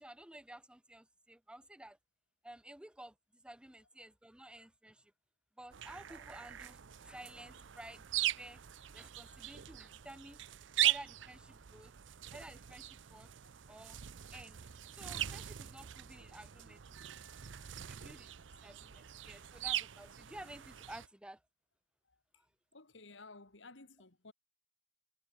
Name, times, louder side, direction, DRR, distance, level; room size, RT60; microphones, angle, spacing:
voice 1, 0.0-2.0 2.4-5.1 5.6-8.6 8.9-10.4 10.8-11.9 12.3-13.3 13.7-14.0 14.3-14.6 14.9-17.1 17.7-18.3 18.6-21.4 22.3-22.5, right 1 dB, 5° right, 0.7 m, -53 dB
sound 1, 5.7-21.1, right 13 dB, 75° right, 0.6 m, -40 dB
voice 2, 22.0-22.5 22.7-24.3, left 3 dB, 75° left, 2.4 m, -56 dB
head